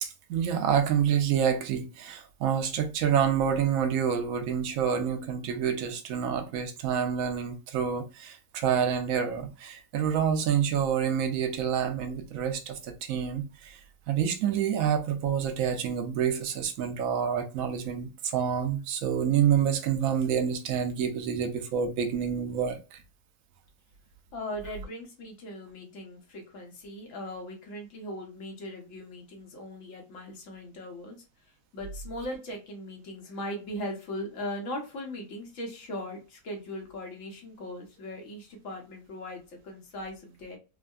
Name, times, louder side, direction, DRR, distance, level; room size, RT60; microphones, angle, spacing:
voice 1, 0.0-13.8 14.1-23.0, right 8 dB, 65° right, 0.9 m, -28 dB
voice 2, 24.3-31.2 31.4-40.6, left 1 dB, 55° left, 1.1 m, -39 dB
3.5 x 2.1 x 2.3 m
omnidirectional pair, 1.9 m